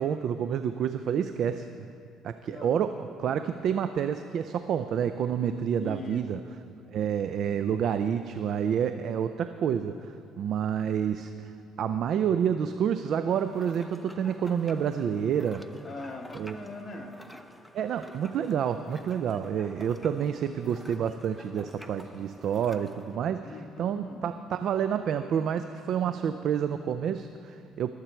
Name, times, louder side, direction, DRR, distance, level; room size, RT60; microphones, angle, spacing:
voice 1, 0.0-1.7 2.2-6.4 6.9-11.5 11.8-15.6 16.3-16.6 17.7-27.9, right 8 dB, 60° right, 10 dB, 0.4 m, -29 dB
voice 2, 5.8-6.6 15.8-17.2 23.4-24.4, left 2 dB, 30° left, 0 dB, 1.9 m, -41 dB
sound 1, 13.3-23.2, equal, ahead, 0.7 m, -50 dB
21.0 x 8.1 x 4.5 m, 2.5 s
supercardioid pair, 80°, 0 cm